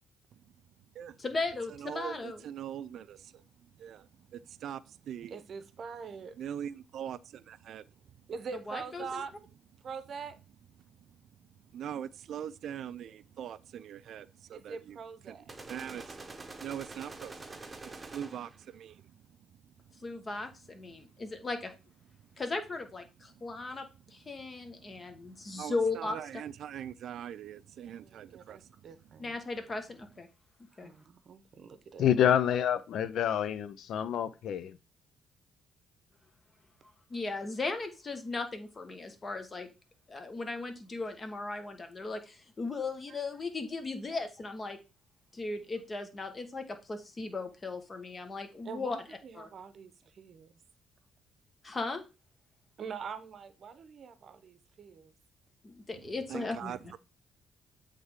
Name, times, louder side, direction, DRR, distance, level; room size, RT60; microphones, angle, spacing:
voice 1, 1.2-2.5 8.7-9.2 20.0-21.7 22.4-23.9 24.1-26.2 29.2-30.3 30.8-30.9 37.1-39.7 40.1-44.8 45.3-49.0 49.3-49.5 51.6-52.0 55.6-56.8, left 3 dB, 30° left, 1.2 m, -37 dB
voice 2, 1.8-3.3 3.8-4.1 4.3-4.8 5.1-5.4 6.4-7.8 11.7-15.0 15.3-15.4 15.7-16.2 16.6-17.6 18.1-19.0 25.5-28.6 56.3-56.8, right 9 dB, 70° right, 0.3 m, -41 dB
voice 3, 5.3-6.5 8.3-9.4 9.8-10.4 14.5-15.5 28.0-29.4 30.7-32.1 48.6-50.6 52.8-55.1, right 6 dB, 55° right, 0.7 m, -44 dB
sound 1, 15.5-18.6, right 3 dB, 20° right, 1.0 m, -46 dB
voice 4, 32.0-34.8, left 9 dB, 70° left, 0.4 m, -27 dB
7.9 x 3.3 x 3.6 m
cardioid pair, 90°, 0 cm